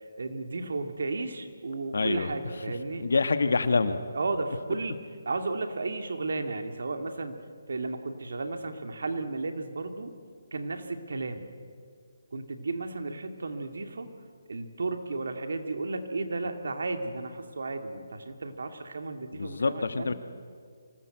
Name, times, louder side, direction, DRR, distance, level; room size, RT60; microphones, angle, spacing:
voice 1, 0.2-3.1 4.1-5.0 5.3-7.4 7.7-10.1 10.5-11.4 12.3-14.1 14.5-20.1, right 3 dB, 75° right, 6 dB, 2.5 m, -33 dB
voice 2, 1.9-2.3 3.0-4.0 19.3-20.1, left 4 dB, 75° left, 10 dB, 1.6 m, -26 dB
25.5 x 18.5 x 8.0 m, 2.1 s
hypercardioid pair, 155°, 0 cm